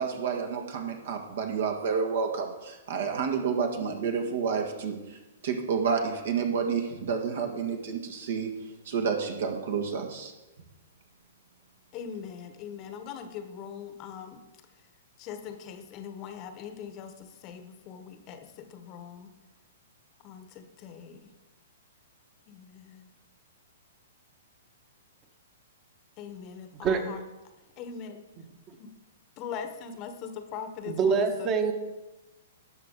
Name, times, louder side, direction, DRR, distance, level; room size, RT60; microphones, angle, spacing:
voice 1, 0.0-8.5 8.8-10.3, right 6 dB, 60° right, 4 dB, 1.7 m, -30 dB
voice 2, 11.9-14.4 15.2-19.3 20.2-21.3 22.5-23.1 26.2-27.2 27.8-28.2 28.8-28.9 29.4-31.5, left 7 dB, 35° left, 7 dB, 1.1 m, -41 dB
voice 3, 30.9-31.7, right 5 dB, 30° right, 6 dB, 1.5 m, -25 dB
18.5 x 6.7 x 3.7 m, 1.1 s
figure-of-eight pair, 110°, 0 cm